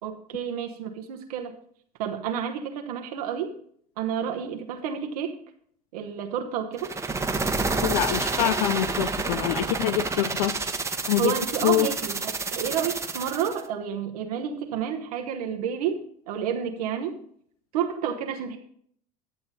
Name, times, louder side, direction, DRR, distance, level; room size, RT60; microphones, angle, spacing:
voice 1, 0.0-1.5 2.0-3.6 4.0-5.4 5.9-6.9 11.2-17.2 17.7-18.6, right 8 dB, 75° right, 4 dB, 1.0 m, -30 dB
sound 1, 6.8-13.6, right 3 dB, 15° right, 1.0 m, -29 dB
voice 2, 7.8-10.5 11.1-11.3 11.6-11.9, left 13 dB, 70° left, 14 dB, 0.4 m, -25 dB
11.0 x 6.8 x 4.1 m, 0.64 s
hypercardioid pair, 80°, 19 cm